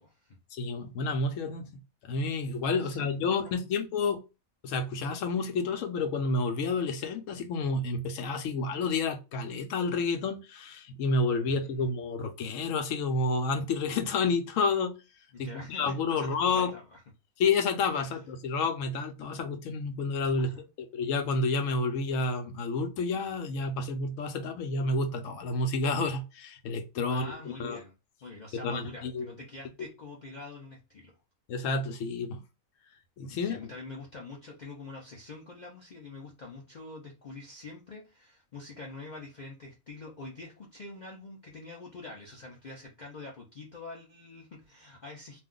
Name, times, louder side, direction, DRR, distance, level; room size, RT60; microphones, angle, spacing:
voice 1, 0.0-0.4 2.8-3.2 3.4-3.6 11.4-11.8 15.3-17.0 18.0-18.2 20.3-20.7 27.1-27.9 28.2-31.1 33.4-45.4, left 3 dB, 50° left, 0.5 m, -45 dB
voice 2, 0.5-1.7 2.0-4.2 4.6-14.9 15.4-16.7 17.4-20.5 20.8-27.8 28.6-29.3 31.5-32.4 33.2-33.6, left 3 dB, 70° left, 0.9 m, -30 dB
2.5 x 2.3 x 3.6 m
omnidirectional pair, 1.4 m